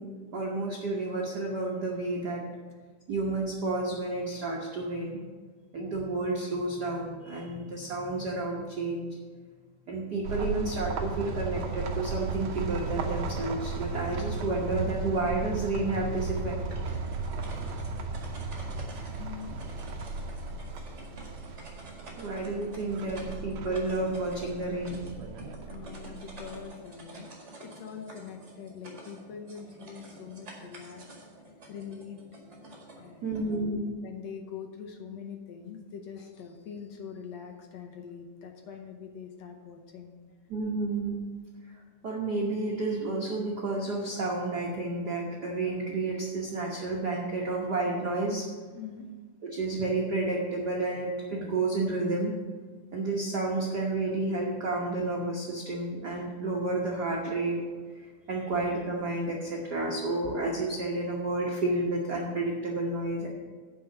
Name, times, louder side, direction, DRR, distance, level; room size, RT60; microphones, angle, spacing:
voice 1, 0.0-2.4 3.1-5.2 5.7-9.2 9.9-16.6 22.2-25.0 33.2-33.9 40.5-41.2 42.0-48.5 49.4-52.3 52.9-57.6 58.3-63.3, right 2 dB, 70° right, -2 dB, 0.9 m, -31 dB
sound 1, 10.2-26.6, right 4 dB, 90° right, 1.1 m, -35 dB
sound 2, 16.6-33.6, right 1 dB, 30° right, 1.7 m, -49 dB
voice 2, 19.2-19.7 25.7-27.3 27.6-31.1 31.7-32.2 33.0-33.7 34.0-40.2 48.7-49.1, left 7 dB, 70° left, 4 dB, 1.8 m, -43 dB
9.1 x 5.6 x 6.9 m, 1.5 s
omnidirectional pair, 3.5 m